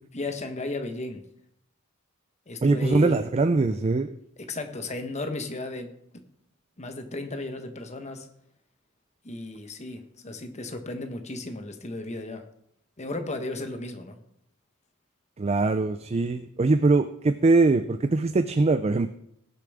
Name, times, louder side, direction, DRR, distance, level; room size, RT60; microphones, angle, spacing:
voice 1, 0.1-1.2 2.5-3.2 4.4-5.9 6.8-8.3 9.2-12.4 13.0-14.2, left 2 dB, 35° left, 7 dB, 1.1 m, -34 dB
voice 2, 2.6-4.1 15.4-19.1, right 3 dB, 30° right, 9 dB, 0.4 m, -22 dB
20.0 x 7.0 x 3.5 m, 0.75 s
head